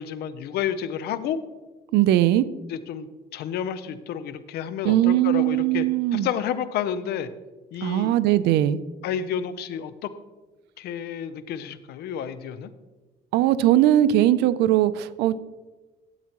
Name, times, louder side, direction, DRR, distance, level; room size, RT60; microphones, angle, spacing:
voice 1, 0.0-1.4 2.7-5.9 6.1-7.3 7.7-8.1 9.0-10.1 10.8-12.7, left 9 dB, 75° left, 13 dB, 0.6 m, -30 dB
voice 2, 1.9-2.4 4.8-6.3 7.8-8.8 13.3-15.4, right 13 dB, 85° right, 16 dB, 0.5 m, -20 dB
12.0 x 8.4 x 3.0 m, 1.2 s
cardioid pair, 110°, 17 cm